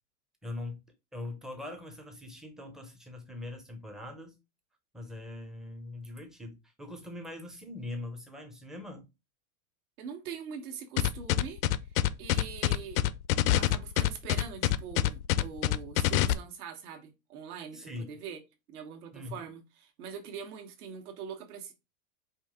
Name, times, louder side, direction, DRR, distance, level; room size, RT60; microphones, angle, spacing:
voice 1, 0.4-0.8 1.1-4.4 4.9-9.1 17.7-18.1 19.1-19.4, left 2 dB, ahead, 0.4 m, -42 dB
voice 2, 10.0-11.6 12.2-13.0 13.6-18.4 18.7-21.7, right 7 dB, 80° right, 1.4 m, -42 dB
sound 1, 11.0-16.3, left 14 dB, 65° left, 0.5 m, -25 dB
5.1 x 2.8 x 3.5 m
supercardioid pair, 150°, 44 cm